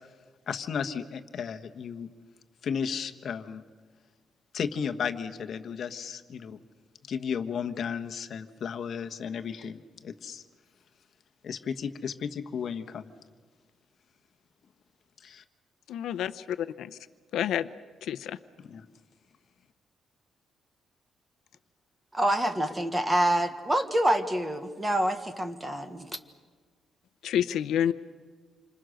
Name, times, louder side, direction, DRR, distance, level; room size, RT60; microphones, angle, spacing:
voice 1, 0.5-2.1 2.6-3.6 4.5-6.6 7.1-10.4 11.4-13.1 15.2-15.4 18.6-18.9, left 7 dB, 50° left, 8 dB, 1.3 m, -34 dB
voice 2, 15.9-17.0 17.3-17.7 18.0-18.4 27.2-27.9, left 10 dB, 85° left, 13 dB, 0.8 m, -29 dB
voice 3, 22.1-26.1, right 1 dB, 10° right, 8 dB, 1.4 m, -26 dB
28.0 x 25.5 x 6.5 m, 1.5 s
cardioid pair, 165°, 0 cm